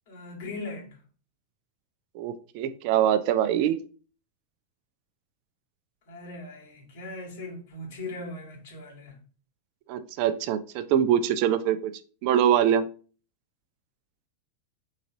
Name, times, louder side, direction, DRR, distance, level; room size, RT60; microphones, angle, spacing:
voice 1, 0.1-1.0 6.1-9.2, left 2 dB, 55° left, 1.7 m, -39 dB
voice 2, 2.2-3.8 9.9-11.9 12.2-12.9, right 10 dB, 45° right, 0.3 m, -23 dB
3.9 x 3.8 x 2.6 m
figure-of-eight pair, 90°, 0 cm